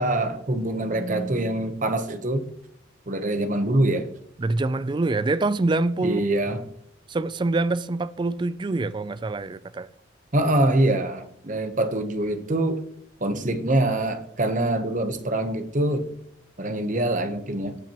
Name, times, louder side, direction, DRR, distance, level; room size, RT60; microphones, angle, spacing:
voice 1, 0.0-2.5 3.1-4.1 6.0-6.6 10.3-12.8 13.2-16.1 16.6-17.8, right 1 dB, 40° right, 0.9 m, -24 dB
voice 2, 4.4-6.2 7.1-9.9, right 2 dB, 25° right, 0.3 m, -25 dB
17.0 x 5.8 x 3.0 m
head